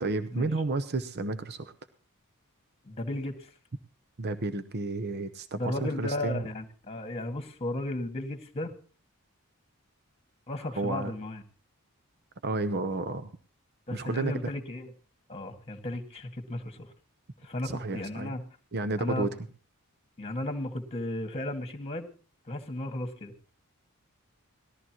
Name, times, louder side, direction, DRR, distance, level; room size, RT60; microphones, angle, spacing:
voice 1, 0.0-1.7 4.2-6.4 10.7-11.1 12.4-13.3 13.9-14.5 17.6-18.3 18.7-19.3, right 3 dB, 50° right, 11 dB, 0.8 m, -31 dB
voice 2, 2.8-3.5 5.5-8.7 10.5-11.4 13.9-14.9 15.3-16.9 17.4-18.4 19.0-19.3 20.2-22.1 22.5-23.3, left 1 dB, 30° left, 6 dB, 1.9 m, -34 dB
19.0 x 13.5 x 3.0 m, 0.38 s
head